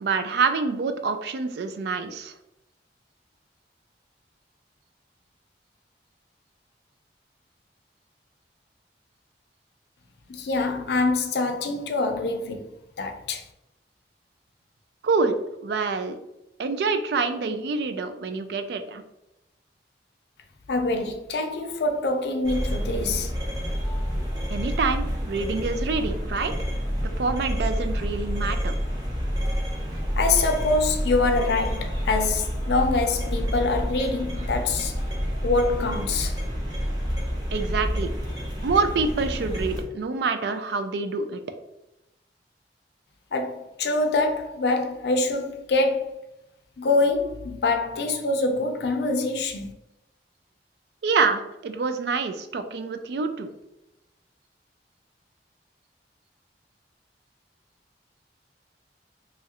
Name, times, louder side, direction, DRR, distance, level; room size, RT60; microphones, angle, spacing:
voice 1, 0.0-2.3 15.0-15.4 15.6-16.2 16.6-19.0 24.5-26.5 27.2-28.7 37.5-38.1 38.6-41.4 51.0-53.5, right 4 dB, 70° right, 0.3 m, -26 dB
voice 2, 10.3-13.4 20.7-23.3 30.2-34.9 35.4-36.4 43.3-46.1 46.8-49.7, left 3 dB, 75° left, 0.4 m, -25 dB
sound 1, 22.4-39.8, equal, 25° right, 0.6 m, -28 dB
3.0 x 2.4 x 2.8 m
head